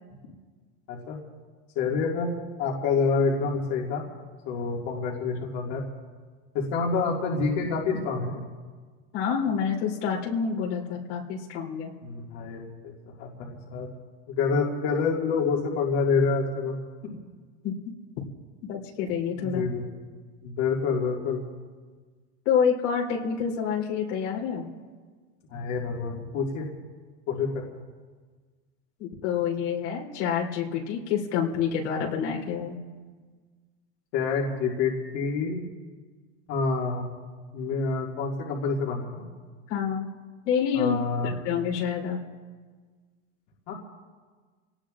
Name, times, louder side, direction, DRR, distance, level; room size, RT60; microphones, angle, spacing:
voice 1, 0.9-1.2 1.8-2.3 2.6-4.0 4.5-5.8 6.5-8.4 12.0-12.6 13.2-13.9 14.3-16.8 17.0-17.2 19.4-19.9 20.4-21.4 25.5-26.7 27.3-27.8 34.1-35.6 36.5-37.1 37.5-39.2 40.7-41.3 43.7-43.8, left 4 dB, 55° left, -2 dB, 2.2 m, -27 dB
voice 2, 9.1-11.9 17.6-17.7 18.7-19.6 22.4-24.7 29.0-32.8 39.7-40.1 40.4-41.0 41.2-42.2, left 7 dB, 80° left, -2 dB, 3.4 m, -27 dB
28.5 x 18.0 x 2.5 m, 1.5 s
supercardioid pair, 140°, 35 cm